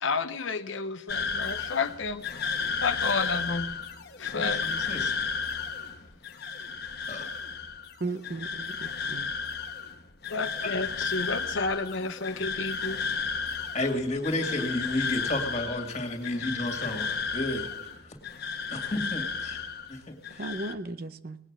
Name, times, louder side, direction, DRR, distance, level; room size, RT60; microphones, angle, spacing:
voice 1, 0.0-2.2 2.8-3.7 4.2-4.6 10.3-13.0, left 4 dB, 70° left, 9 dB, 0.7 m, -31 dB
sound 1, 1.1-20.0 20.2-20.7, left 5 dB, 50° left, 1.1 m, -33 dB
voice 2, 4.3-5.1 7.1-7.3 10.6-10.7 13.7-18.1 18.7-20.5, left 1 dB, 35° left, 4 dB, 2.3 m, -32 dB
voice 3, 8.0-9.3 20.4-21.4, right 2 dB, 45° right, 12 dB, 0.6 m, -36 dB
19.0 x 9.1 x 6.1 m, 0.87 s
head